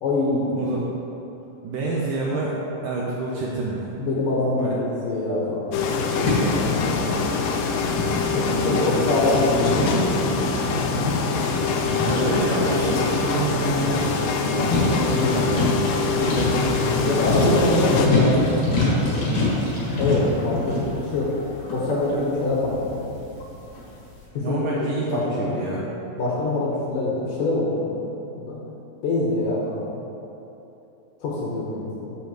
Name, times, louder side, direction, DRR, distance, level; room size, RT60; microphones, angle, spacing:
voice 1, 0.0-0.6 4.0-7.1 8.3-10.0 17.1-18.5 20.0-21.3 21.7-22.9 24.3-25.6 26.2-28.6 29.0-30.0 31.2-32.2, left 2 dB, 65° left, -5 dB, 2.5 m, -24 dB
voice 2, 0.6-0.9 1.6-2.5 2.8-3.9 4.6-4.8 8.1-9.2 12.1-14.2 14.5-17.2 19.3-19.6 24.3-25.9, right 3 dB, 75° right, -5 dB, 2.1 m, -28 dB
sound 1, 5.7-18.1, left 5 dB, 80° left, 2.0 m, -25 dB
sound 2, 6.2-23.9, left 2 dB, 45° left, 2.5 m, -26 dB
13.5 x 6.9 x 3.2 m, 2.9 s
omnidirectional pair, 4.8 m